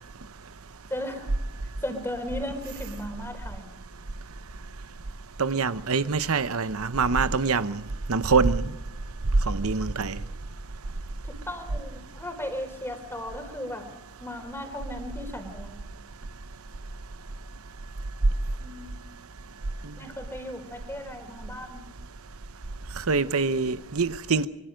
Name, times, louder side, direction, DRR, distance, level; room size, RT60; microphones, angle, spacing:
voice 1, 0.9-1.3 1.8-3.8 11.3-13.9 14.2-15.8 18.6-19.0 20.0-21.9, left 1 dB, 10° left, 4.0 m, -36 dB
voice 2, 5.4-7.8 8.1-8.7 9.5-10.2 23.1-24.5, right 4 dB, 85° right, 0.9 m, -24 dB
25.0 x 24.0 x 5.2 m
head